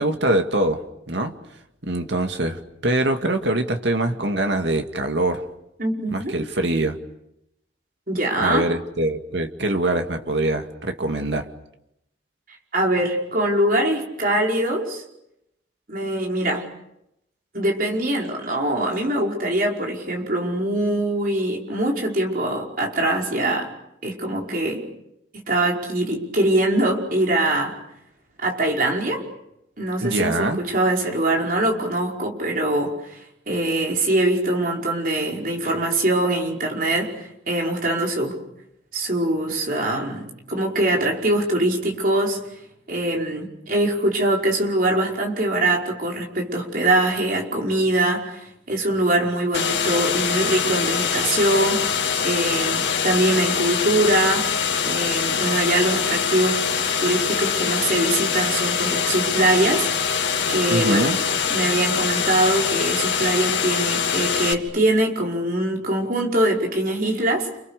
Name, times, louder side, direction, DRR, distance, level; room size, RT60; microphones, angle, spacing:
voice 1, 0.0-1.3 1.8-5.5 6.1-7.0 8.4-11.5 30.0-30.6 60.7-61.2, right 1 dB, 75° right, 2.2 m, -23 dB
voice 2, 5.8-6.3 8.1-8.6 12.7-15.0 15.9-16.7 17.5-23.7 24.0-24.8 25.3-27.8 28.4-29.2 29.8-33.2 33.5-38.4 38.9-42.4 42.9-51.8 52.2-54.5 54.8-56.6 57.0-59.9 60.5-61.2 61.5-67.5, right 1 dB, 50° right, 5.3 m, -23 dB
sound 1, 49.5-64.5, left 6 dB, 75° left, 2.8 m, -23 dB
30.0 x 28.5 x 6.8 m
head